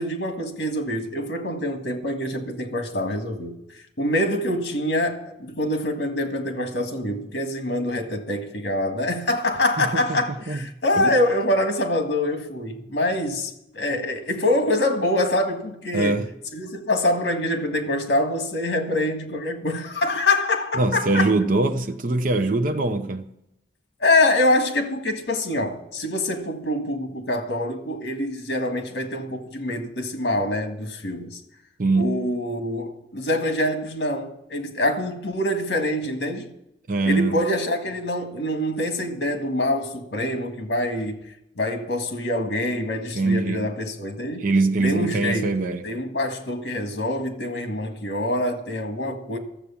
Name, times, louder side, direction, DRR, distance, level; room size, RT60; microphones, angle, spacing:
voice 1, 0.0-3.6 4.0-16.2 16.5-21.3 24.0-31.4 31.9-36.5 37.0-41.2 41.6-44.5 44.8-45.5 45.8-49.4, left 1 dB, 65° left, 1.7 m, -25 dB
voice 2, 15.9-16.3 20.8-23.3 31.8-32.3 36.9-37.4 43.1-43.7 44.4-45.9, right 2 dB, 50° right, 0.6 m, -22 dB
13.0 x 7.4 x 7.1 m
head